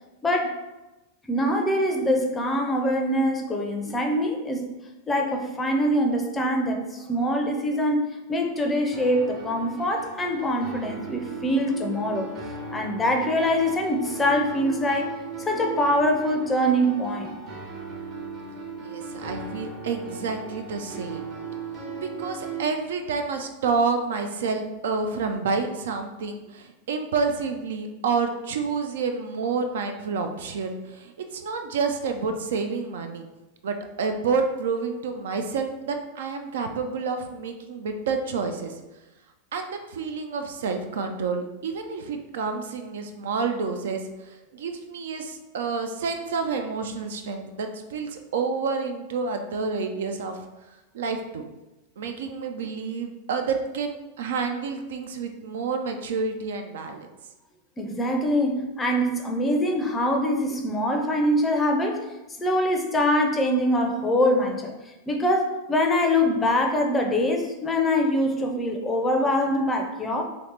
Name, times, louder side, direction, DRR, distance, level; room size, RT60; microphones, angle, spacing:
voice 1, 0.2-0.6 1.3-4.7 5.1-12.3 12.7-15.1 15.4-17.4 57.8-62.1 62.4-64.7 65.1-70.2, equal, 15° left, 2 dB, 0.5 m, -24 dB
sound 1, 8.9-22.6, right 4 dB, 35° right, 0.7 m, -37 dB
voice 2, 18.8-21.2 22.0-33.2 33.6-38.7 39.5-50.4 50.9-51.4 52.0-57.1, right 4 dB, 60° right, 6 dB, 0.3 m, -29 dB
3.0 x 2.8 x 3.2 m, 1.0 s
figure-of-eight pair, 90°, 0 cm